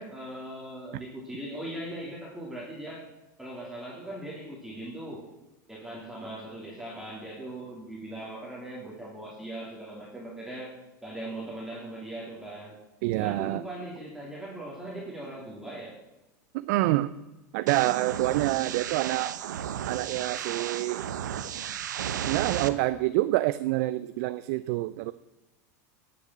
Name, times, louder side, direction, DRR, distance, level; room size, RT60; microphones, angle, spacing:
voice 1, 0.0-3.0 3.4-5.3 5.7-12.8 13.1-16.0, right 1 dB, 5° right, -4 dB, 3.0 m, -39 dB
voice 2, 13.0-13.6 16.5-17.1 17.5-19.3 19.9-21.0 22.3-25.1, right 17 dB, 65° right, 14 dB, 0.5 m, -27 dB
sound 1, 17.7-22.7, right 9 dB, 85° right, 0.9 m, -34 dB
13.0 x 6.9 x 7.4 m, 1.1 s
hypercardioid pair, 105°, 10 cm